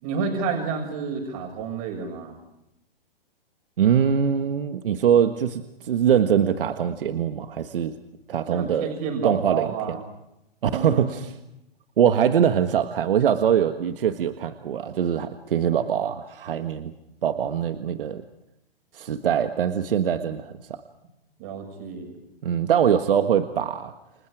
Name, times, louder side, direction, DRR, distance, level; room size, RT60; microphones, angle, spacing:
voice 1, 0.0-2.4 8.5-10.0 10.7-11.1 21.4-22.1, right 5 dB, 40° right, 3 dB, 6.9 m, -30 dB
voice 2, 3.8-7.9 8.3-8.9 9.2-10.0 10.6-11.3 12.0-16.9 17.2-18.2 18.9-20.8 22.4-23.9, right 8 dB, 65° right, 8 dB, 1.6 m, -23 dB
30.0 x 24.5 x 4.9 m, 0.87 s
hypercardioid pair, 155°, 29 cm